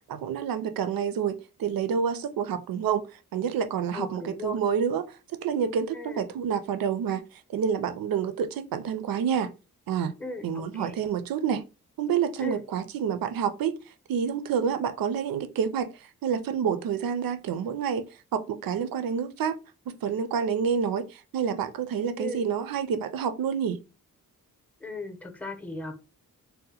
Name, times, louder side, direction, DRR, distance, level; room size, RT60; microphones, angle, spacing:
voice 1, 0.1-3.0 3.3-5.0 5.4-7.2 7.5-9.5 9.9-10.1 10.4-11.6 12.0-13.7 14.1-15.9 16.2-18.0 18.3-19.6 19.9-23.8, right 7 dB, 85° right, 0.5 m, -28 dB
voice 2, 3.9-4.6 5.9-6.3 10.2-10.9 12.4-12.6 22.2-22.4 24.8-25.9, left 1 dB, 5° left, 0.6 m, -37 dB
2.7 x 2.1 x 4.1 m
wide cardioid pair, 110°, 34 cm